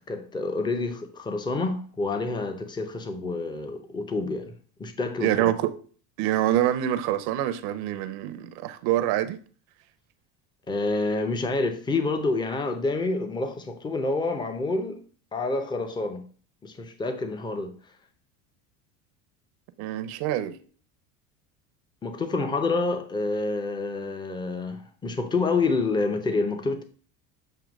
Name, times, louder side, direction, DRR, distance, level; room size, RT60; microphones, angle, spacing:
voice 1, 0.1-5.5 10.7-15.0 15.3-16.2 16.6-17.7 22.0-26.8, left 3 dB, 10° left, 0.6 m, -28 dB
voice 2, 5.2-5.7 6.2-9.4 19.8-20.6, right 12 dB, 65° right, 0.8 m, -25 dB
7.7 x 2.7 x 5.1 m
supercardioid pair, 130°, 41 cm